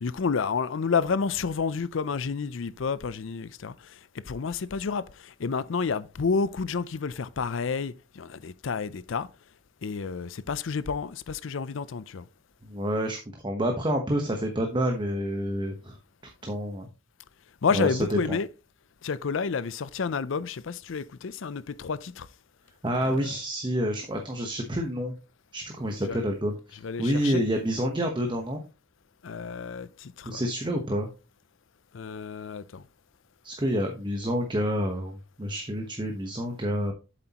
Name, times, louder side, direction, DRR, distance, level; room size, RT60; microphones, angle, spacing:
voice 1, 0.0-3.7 4.3-5.0 5.4-9.3 9.8-12.2 17.6-18.5 19.0-22.3 26.1-26.2 26.8-27.4 29.2-30.4 31.9-32.8, left 5 dB, 70° left, 0.5 m, -30 dB
voice 2, 12.6-16.0 16.4-16.9 17.7-18.4 22.8-25.1 25.5-28.6 30.2-31.1 33.4-36.9, equal, 25° right, 1.0 m, -28 dB
8.0 x 7.6 x 2.9 m
head